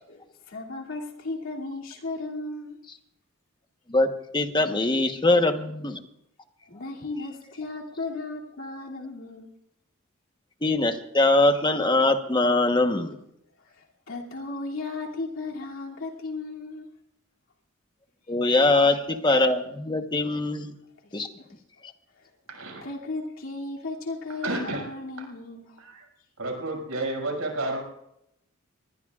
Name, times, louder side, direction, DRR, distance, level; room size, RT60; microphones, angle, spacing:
voice 1, 0.1-2.8 6.7-9.5 13.6-16.9 18.3-18.4 21.0-21.5 22.1-22.3 22.8-25.8, left 3 dB, 70° left, -1 dB, 2.8 m, -35 dB
voice 2, 3.9-6.0 10.6-13.2 18.3-20.7 21.1-21.3, left 2 dB, 20° left, 6 dB, 1.1 m, -22 dB
voice 3, 22.5-22.8 24.4-24.9 25.2-25.3 25.8-26.0 26.4-27.8, right 2 dB, 85° right, 0 dB, 6.3 m, -31 dB
25.5 x 20.5 x 2.5 m, 0.81 s
head